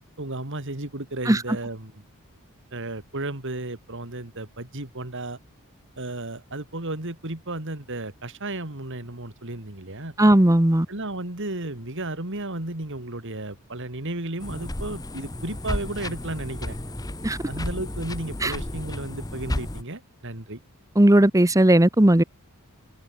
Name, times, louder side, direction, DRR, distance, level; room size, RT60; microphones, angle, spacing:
voice 1, 0.2-1.9 2.7-5.4 6.0-10.1 10.9-16.8 17.5-20.6, right 2 dB, 60° right, 3.1 m, -33 dB
voice 2, 10.2-10.9 17.2-17.4 18.4-18.5 21.0-22.2, right 1 dB, 15° right, 1.0 m, -17 dB
sound 1, 14.4-19.8, left 1 dB, 15° left, 1.3 m, -33 dB
head